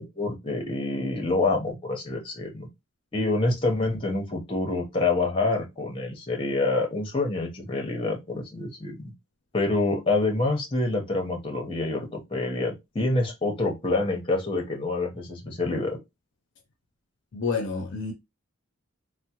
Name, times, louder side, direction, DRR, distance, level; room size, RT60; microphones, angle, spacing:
voice 1, 0.0-2.7 3.1-9.1 9.5-16.0, left 2 dB, 25° left, 0.7 m, -27 dB
voice 2, 17.3-18.1, left 4 dB, 55° left, 0.5 m, -29 dB
3.5 x 2.0 x 2.8 m
head